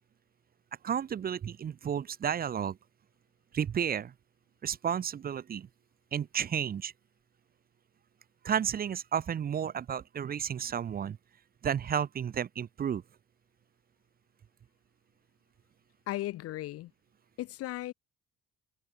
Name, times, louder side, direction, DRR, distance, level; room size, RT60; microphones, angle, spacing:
voice 1, 0.8-2.8 3.5-4.1 4.6-5.7 6.1-6.9 8.4-11.2 11.6-13.0, right 8 dB, 30° right, 0.9 m, -32 dB
voice 2, 16.1-16.9 17.4-17.9, left 16 dB, 50° left, 0.5 m, -36 dB
cardioid pair, 155°, 30 cm